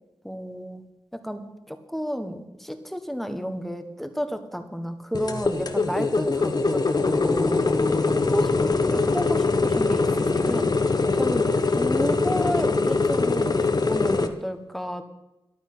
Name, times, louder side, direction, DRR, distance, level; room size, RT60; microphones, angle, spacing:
voice 1, 0.2-0.8 1.1-7.7 8.0-8.5 8.9-10.8 11.1-15.0, equal, ahead, 7 dB, 1.4 m, -32 dB
sound 1, 5.1-14.3, left 3 dB, 45° left, 1.2 m, -23 dB
13.5 x 11.5 x 6.1 m, 0.95 s
wide cardioid pair, 90°, 10 cm